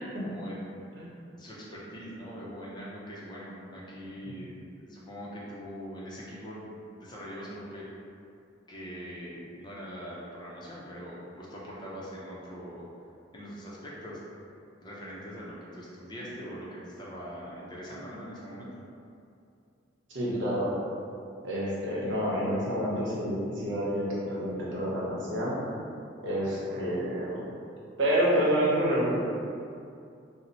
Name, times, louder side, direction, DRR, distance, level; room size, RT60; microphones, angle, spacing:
voice 1, 0.2-0.8 1.3-7.9 8.7-12.8 13.3-14.2 14.8-18.7, equal, 25° left, -6 dB, 0.5 m, -42 dB
voice 2, 20.1-20.7 21.4-25.6 26.2-27.5 28.0-29.1, equal, 70° right, -7 dB, 0.8 m, -28 dB
2.8 x 2.0 x 4.0 m, 2.5 s
head